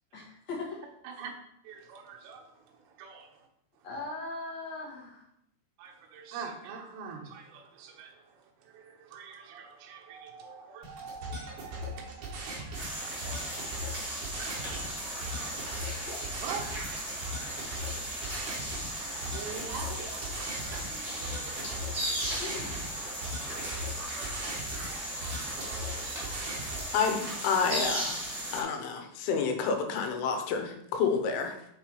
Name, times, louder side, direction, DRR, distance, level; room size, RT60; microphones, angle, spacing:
voice 1, 0.1-0.8 3.8-5.2 22.3-22.8, left 3 dB, 55° left, -4 dB, 1.9 m, -39 dB
voice 2, 1.6-3.5 3.8-3.9 5.8-14.1 14.9-17.9 18.2-18.3 18.9-21.6 22.3-22.5 23.5-26.6, right 6 dB, 75° right, 3 dB, 3.2 m, -46 dB
sound 1, 10.8-26.8, equal, 60° right, 3.4 m, -40 dB
sound 2, 12.7-28.6, right 1 dB, 35° right, 1.8 m, -36 dB
voice 3, 26.9-28.2 28.5-31.6, left 5 dB, 85° left, 5 dB, 3.4 m, -29 dB
7.1 x 5.5 x 4.5 m, 0.77 s
omnidirectional pair, 5.5 m